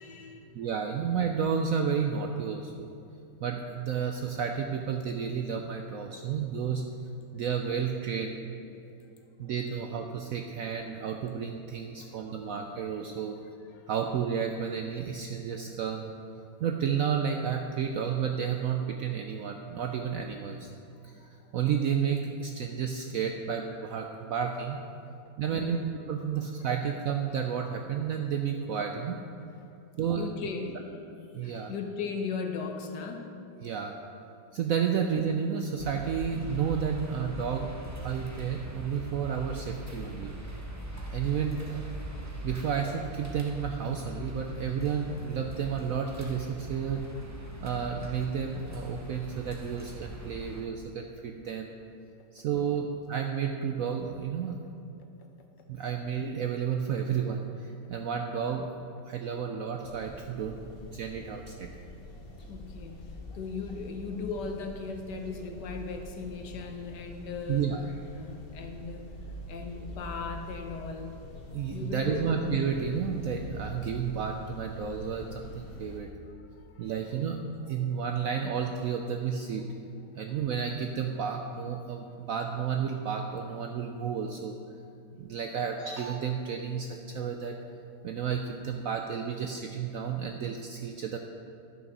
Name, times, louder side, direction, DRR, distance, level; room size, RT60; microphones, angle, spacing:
voice 1, 0.0-0.7 5.5-5.6 6.1-6.3 7.3-7.4 8.8-8.9 10.5-10.7 11.8-12.5 13.7-13.9 21.0-21.4 25.5-25.8 29.6-29.7 30.1-30.8 31.4-33.4 34.9-35.0 57.8-57.9 62.4-63.0 63.3-67.8 68.1-69.1 69.5-71.2 71.7-72.3 76.6-76.9, left 5 dB, 75° left, 4 dB, 1.5 m, -38 dB
voice 2, 0.5-2.9 3.4-6.8 7.3-8.4 9.4-13.3 13.9-16.1 16.6-20.7 21.0-24.8 25.4-29.2 30.0-30.3 31.3-31.7 33.6-33.9 34.5-37.8 38.0-40.3 41.1-41.8 42.4-47.1 47.6-51.7 52.3-54.5 55.7-58.7 59.1-61.7 67.5-67.8 71.5-76.1 76.8-77.4 77.7-79.6 80.1-84.5 85.2-87.6 88.0-91.2, right 7 dB, 75° right, 4 dB, 0.8 m, -31 dB
sound 1, 35.8-50.6, right 1 dB, 15° right, 0.5 m, -41 dB
sound 2, 59.8-76.0, left 1 dB, 35° left, 1.2 m, -45 dB
11.0 x 6.3 x 5.3 m, 2.7 s
omnidirectional pair, 1.9 m